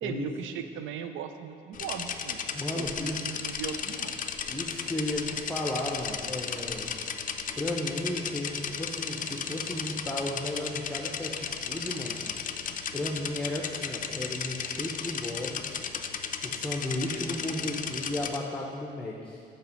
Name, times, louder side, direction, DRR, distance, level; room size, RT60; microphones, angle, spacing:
voice 1, 0.0-2.4 2.7-4.2, right 7 dB, 80° right, 8 dB, 0.4 m, -38 dB
sound 1, 1.7-18.4, left 7 dB, 45° left, 0.4 m, -35 dB
voice 2, 2.5-3.2 4.5-6.9 7.6-12.2 12.9-15.8 16.4-19.4, left 1 dB, 5° left, -1 dB, 0.7 m, -34 dB
5.7 x 4.3 x 6.3 m, 2.3 s
cardioid pair, 90°, 20 cm